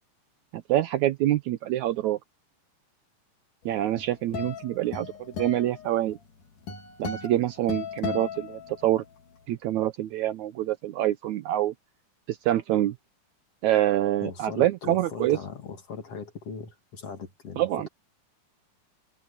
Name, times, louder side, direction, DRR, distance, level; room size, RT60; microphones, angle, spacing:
voice 1, 0.7-2.2 3.7-5.1 5.4-6.2 7.0-9.0 9.5-11.7 12.3-12.9 13.6-15.4 17.6-17.9, right 13 dB, 75° right, 1.9 m, -26 dB
sound 1, 3.7-9.2, left 6 dB, 70° left, 5.2 m, -37 dB
voice 2, 14.2-17.9, left 5 dB, 50° left, 3.1 m, -39 dB
omnidirectional pair, 3.9 m